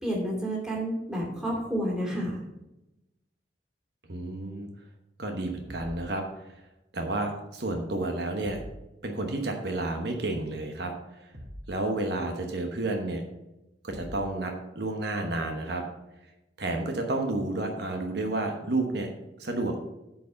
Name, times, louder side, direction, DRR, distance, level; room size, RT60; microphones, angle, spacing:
voice 1, 0.0-2.5, equal, 5° right, -3 dB, 2.6 m, -30 dB
voice 2, 4.1-4.7 5.2-6.5 6.9-8.6 9.0-11.3 11.7-13.2 13.8-15.8 16.6-19.1 19.4-19.8, right 2 dB, 65° right, 3 dB, 1.1 m, -31 dB
sound 1, 5.7-6.0 8.4-8.8 11.3-11.7 13.9-14.3, equal, 35° right, 1.9 m, -42 dB
9.0 x 4.9 x 6.4 m, 0.94 s
head